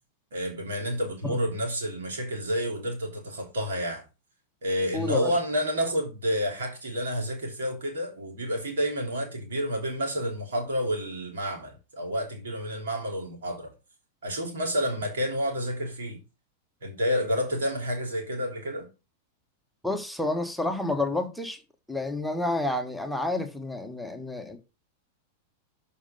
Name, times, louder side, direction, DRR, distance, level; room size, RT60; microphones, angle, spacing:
voice 1, 0.3-4.0 4.6-13.7 14.2-16.2 16.8-18.9, equal, 80° right, 3.2 m, -29 dB
voice 2, 4.9-5.4 19.8-21.6 21.9-24.6, left 2 dB, ahead, 1.2 m, -29 dB
7.1 x 5.4 x 5.2 m
hypercardioid pair, 110°, 0 cm